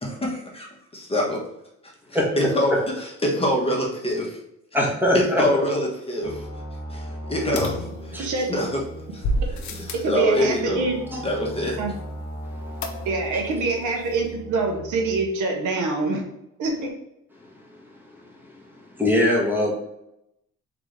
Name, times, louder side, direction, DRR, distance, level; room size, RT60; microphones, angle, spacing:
voice 1, 0.0-0.7 0.9-1.4 2.1-4.4 5.1-6.4 6.9-8.2 8.5-8.8 9.1-9.2 9.7-10.8 11.2-11.8, left 1 dB, 20° left, -2 dB, 1.3 m, -25 dB
voice 2, 4.7-5.6 8.1-8.3 11.1-11.2 18.9-19.7, left 1 dB, 5° right, -3 dB, 1.5 m, -21 dB
sound 1, 6.2-15.3, equal, 55° left, 1.4 m, -38 dB
sound 2, 7.6-8.5 9.2-10.2 12.8-13.4 13.7-13.8 14.0-14.1, left 1 dB, 70° left, 0.7 m, -29 dB
voice 3, 10.0-11.0 11.8-11.9 13.0-16.2 16.6-16.9, right 3 dB, 80° right, 2 dB, 1.0 m, -25 dB
3.9 x 3.5 x 3.4 m, 0.84 s
cardioid pair, 90°, 30 cm